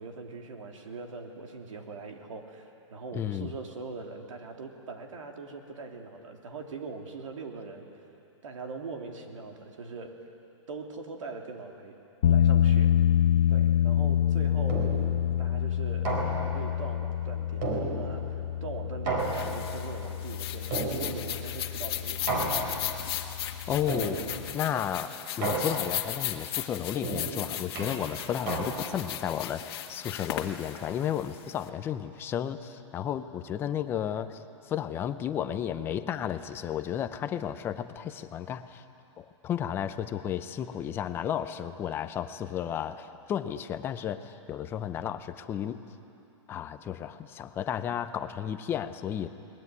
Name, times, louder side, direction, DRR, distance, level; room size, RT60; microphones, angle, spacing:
voice 1, 0.0-7.9 8.4-10.3 10.7-11.9 12.3-13.0 13.5-14.9 15.4-22.9 24.7-24.9, right 4 dB, 90° right, 2 dB, 3.2 m, -41 dB
voice 2, 3.1-3.5 23.7-24.2 24.5-25.1 25.4-38.8 39.2-45.8 46.5-49.3, left 9 dB, 15° left, 11 dB, 0.6 m, -33 dB
sound 1, 12.2-24.6, left 10 dB, 80° left, 0.6 m, -27 dB
sound 2, 14.7-15.2 16.1-16.7 17.6-18.4 19.1-19.9 20.7-21.4 22.3-23.0 23.9-24.5 25.4-26.1 27.0-29.1, right 3 dB, 40° right, 4.4 m, -33 dB
sound 3, 19.2-31.6, left 12 dB, 50° left, 1.6 m, -36 dB
21.5 x 20.5 x 9.7 m, 2.7 s
hypercardioid pair, 165°, 16 cm